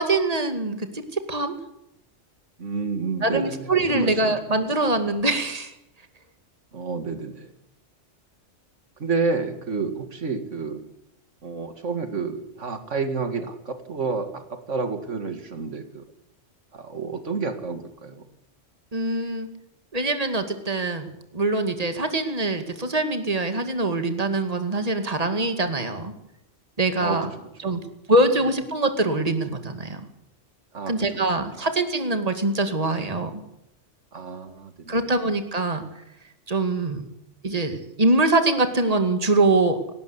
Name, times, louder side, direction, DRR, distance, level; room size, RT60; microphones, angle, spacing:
voice 1, 0.0-1.5 3.2-5.7 18.9-19.5 19.9-21.1 21.3-26.1 26.8-27.3 27.6-27.8 28.1-30.0 30.9-33.4 34.9-35.8 36.5-37.0 37.4-39.8, right 2 dB, 30° right, 8 dB, 2.3 m, -23 dB
voice 2, 2.6-4.4 6.7-7.5 9.0-10.8 11.4-16.0 16.7-18.2 27.0-27.3 27.6-27.8 30.7-31.2 34.1-35.1, right 4 dB, 80° right, 8 dB, 2.3 m, -30 dB
19.0 x 18.0 x 8.3 m, 0.82 s
omnidirectional pair, 1.2 m